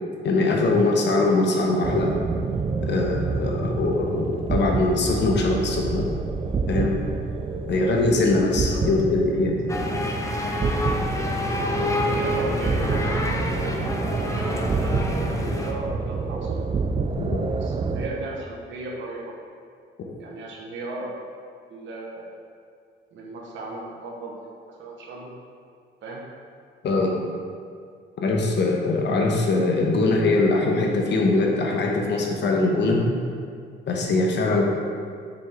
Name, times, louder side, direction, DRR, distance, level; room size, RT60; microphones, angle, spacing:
voice 1, 0.2-2.1 2.8-6.1 6.7-7.0 7.7-9.5 17.2-17.4 26.8-27.1 28.2-33.0 33.9-34.6, left 2 dB, 60° left, 0 dB, 1.1 m, -22 dB
sound 1, 1.8-18.1, right 4 dB, 25° right, 0.4 m, -28 dB
sound 2, 9.7-15.7, left 1 dB, 15° left, 0.7 m, -27 dB
voice 2, 12.0-13.8 14.2-16.6 17.6-19.3 20.2-21.1 21.7-22.3 23.1-24.5 24.8-25.3 26.0-26.2, right 2 dB, 70° right, -2 dB, 1.0 m, -36 dB
6.9 x 4.4 x 3.4 m, 2.2 s
cardioid pair, 90°, 20 cm